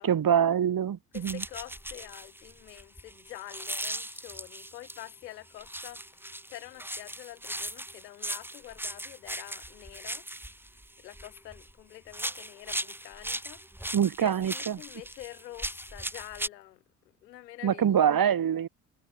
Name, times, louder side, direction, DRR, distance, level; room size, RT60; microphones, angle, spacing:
voice 1, 0.0-1.4 13.9-14.8 17.6-18.7, right 9 dB, 45° right, 4.1 m, -25 dB
voice 2, 1.1-10.3 11.0-13.6 14.2-16.8 17.2-18.2, left 15 dB, 75° left, 6.0 m, -47 dB
sound 1, 1.1-5.1 5.6-11.7 12.1-16.5, right 1 dB, 5° right, 6.0 m, -38 dB
figure-of-eight pair, 50°, 50 cm